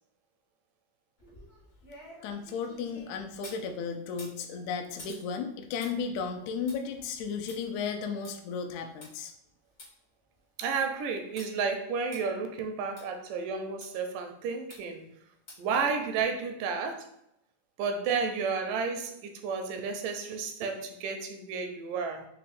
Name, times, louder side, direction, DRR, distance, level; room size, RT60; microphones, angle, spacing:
sound 1, 1.2-3.6 4.1-9.1 9.5-9.6 9.8-9.9 10.3-10.8 11.4-11.5 12.1-12.2 13.0-13.1 13.8-13.9 14.7-15.0 15.5-15.8 16.2-16.3, left 2 dB, 65° left, 0.6 m, -51 dB
voice 1, 2.2-9.3, left 6 dB, 80° left, 4 dB, 1.7 m, -34 dB
voice 2, 10.6-15.0 15.6-17.1 17.8-22.3, right 5 dB, 80° right, 5 dB, 2.2 m, -32 dB
5.5 x 2.2 x 4.1 m, 0.77 s
omnidirectional pair, 3.8 m